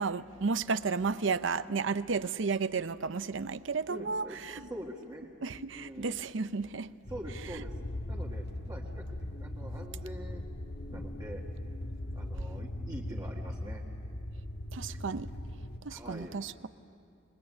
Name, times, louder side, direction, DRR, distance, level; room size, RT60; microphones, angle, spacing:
voice 1, 0.0-4.6 5.4-6.9 14.7-15.3 15.8-16.7, right 4 dB, 70° right, 0.7 m, -32 dB
voice 2, 3.9-5.3 5.7-6.2 7.1-7.7 8.1-10.4 10.9-11.4 12.1-13.8 14.9-15.0 15.9-16.4, equal, 20° right, 1.8 m, -45 dB
sound 1, 7.0-15.8, left 1 dB, 60° left, 1.4 m, -39 dB
27.5 x 21.5 x 8.8 m
head